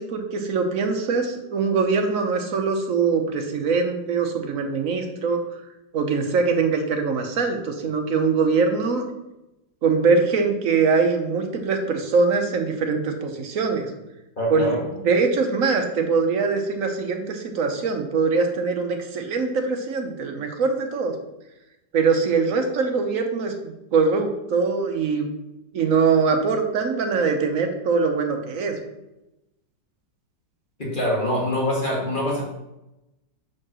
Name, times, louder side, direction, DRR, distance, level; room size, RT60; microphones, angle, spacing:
voice 1, 0.0-5.4 5.9-9.0 9.8-13.9 14.5-14.7 15.0-21.1 21.9-25.3 25.7-28.7, right 4 dB, 50° right, 4 dB, 1.1 m, -22 dB
voice 2, 14.4-14.8 30.8-32.5, equal, 25° left, -4 dB, 1.9 m, -24 dB
5.2 x 4.9 x 6.1 m, 0.93 s
omnidirectional pair, 2.0 m